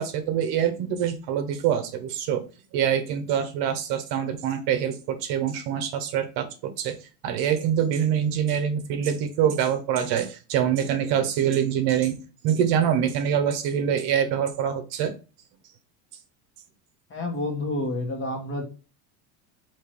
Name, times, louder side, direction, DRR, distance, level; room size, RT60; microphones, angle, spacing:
voice 1, 0.0-2.5 2.7-6.9 7.2-12.2 12.4-15.1, right 9 dB, 50° right, 7 dB, 0.9 m, -25 dB
voice 2, 17.1-18.6, left 1 dB, 25° left, 2 dB, 1.3 m, -29 dB
3.6 x 3.1 x 4.5 m, 0.32 s
supercardioid pair, 120°, 47 cm